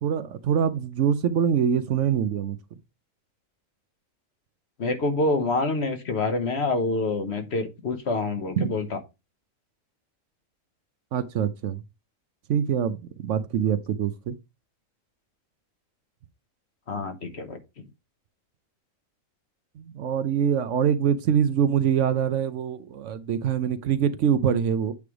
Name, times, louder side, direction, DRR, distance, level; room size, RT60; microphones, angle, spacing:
voice 1, 0.0-2.6 8.6-8.7 11.1-11.8 12.5-14.4 19.7-24.9, right 8 dB, 70° right, 0.9 m, -24 dB
voice 2, 4.8-8.8 16.9-17.6, left 3 dB, 55° left, 1.2 m, -26 dB
8.6 x 3.2 x 4.8 m
omnidirectional pair, 1.4 m